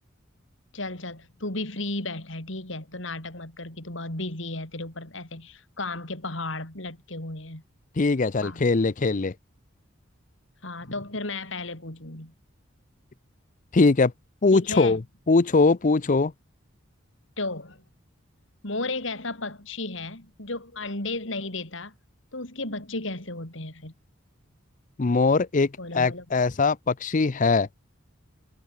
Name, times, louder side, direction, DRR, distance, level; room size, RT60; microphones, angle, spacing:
voice 1, 0.7-7.6 8.4-8.7 10.6-12.3 14.5-15.0 17.4-17.8 18.6-21.9 22.3-23.9 25.8-26.4, left 2 dB, 65° left, 5.0 m, -34 dB
voice 2, 8.0-9.3 13.7-14.1 14.4-15.0 15.3-16.3 25.0-27.7, left 3 dB, 40° left, 0.6 m, -21 dB
head